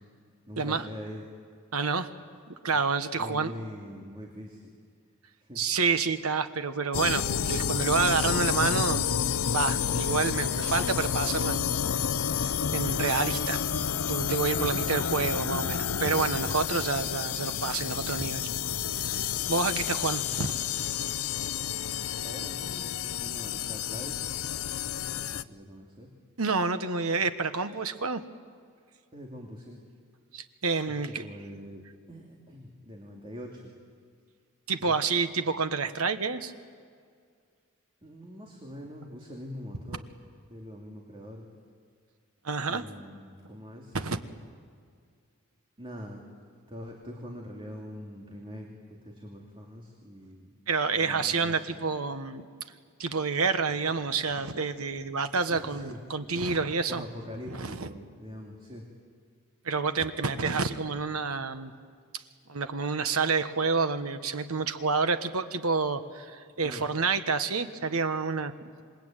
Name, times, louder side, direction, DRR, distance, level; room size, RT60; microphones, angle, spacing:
voice 1, 0.4-1.2 2.7-2.8 3.2-4.7 5.4-5.6 22.2-24.3 25.1-26.1 29.1-29.8 31.1-31.8 32.1-33.7 34.8-35.0 38.0-40.1 40.5-41.4 42.7-44.0 45.8-46.2 46.7-50.5 50.9-51.7 55.5-56.0 56.9-58.9 66.6-66.9, equal, 25° right, -1 dB, 2.7 m, -43 dB
voice 2, 1.7-2.1 2.6-3.5 5.6-9.0 9.5-12.0 12.3-13.6 14.1-18.5 19.0-20.6 26.4-28.2 30.3-31.2 34.7-36.5 42.4-42.9 43.9-44.2 50.7-52.4 53.0-57.0 57.6-57.9 59.6-61.7 62.5-68.5, right 4 dB, 80° right, 9 dB, 1.3 m, -29 dB
sound 1, 6.9-25.4, left 8 dB, 85° left, 0.6 m, -30 dB
27.0 x 22.5 x 9.1 m, 2.1 s
head